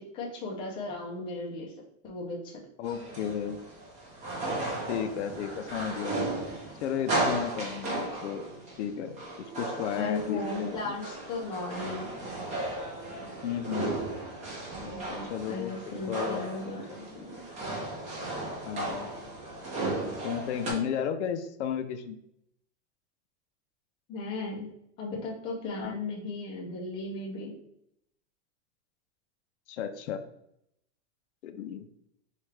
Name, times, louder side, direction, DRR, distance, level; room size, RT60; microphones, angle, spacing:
voice 1, 0.0-1.7 2.0-2.5 9.9-12.1 14.8-17.4 24.1-24.7 25.0-27.5, left 2 dB, 15° left, -2 dB, 0.4 m, -36 dB
voice 2, 2.8-3.6 4.9-6.2 6.8-8.4 8.8-9.2 9.6-10.9 13.4-13.9 15.2-16.4 16.9-17.0 18.6-19.1 20.2-22.2 25.8-26.0 29.7-30.2 31.4-31.9, left 8 dB, 75° left, 9 dB, 0.5 m, -33 dB
sound 1, 2.8-20.7, right 2 dB, 20° right, 0.7 m, -35 dB
4.3 x 2.4 x 3.2 m, 0.76 s
supercardioid pair, 160°, 34 cm